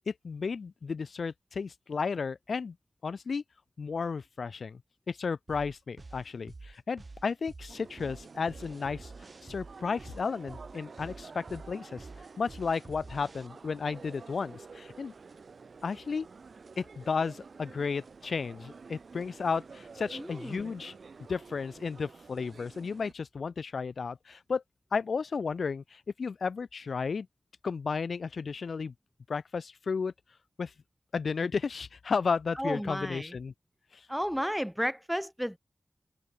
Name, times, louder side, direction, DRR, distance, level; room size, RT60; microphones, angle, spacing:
voice 1, 0.1-2.8 3.0-3.4 3.8-4.8 5.1-9.1 9.4-12.1 12.4-15.1 15.8-16.3 16.8-21.0 21.3-24.6 24.9-27.3 27.6-28.9 29.3-30.1 30.6-30.7 31.1-33.5 33.9-34.1, left 5 dB, 75° left, 1.2 m, -33 dB
sound 1, 5.5-13.5, right 3 dB, 45° right, 4.8 m, -48 dB
sound 2, 7.7-23.1, right 4 dB, 70° right, 1.5 m, -50 dB
voice 2, 20.1-20.8 32.6-33.4 34.1-35.6, equal, ahead, 0.5 m, -33 dB
open air
wide cardioid pair, 95°, 0 cm